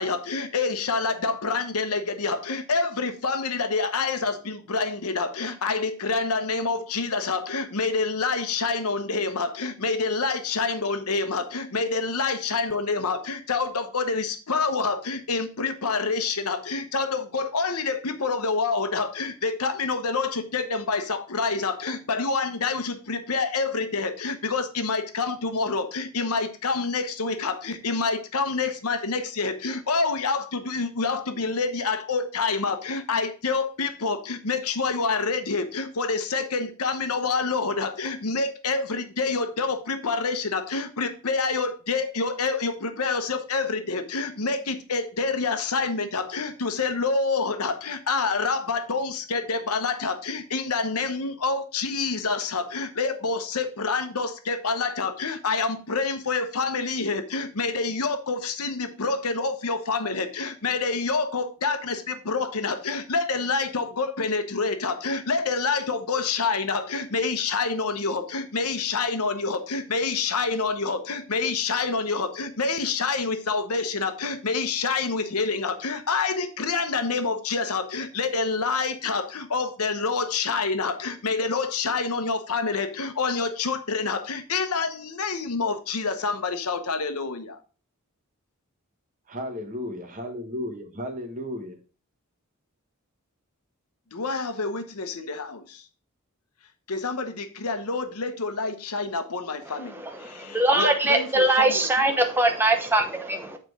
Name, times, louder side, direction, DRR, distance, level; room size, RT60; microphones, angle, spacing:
voice 1, 0.0-87.6 94.1-95.9 96.9-101.8, left 4 dB, 85° left, 0.9 m, -27 dB
voice 2, 89.3-91.8, left 1 dB, 35° right, 1.4 m, -34 dB
voice 3, 100.0-103.6, right 1 dB, 10° right, 1.0 m, -22 dB
7.4 x 4.3 x 4.8 m
head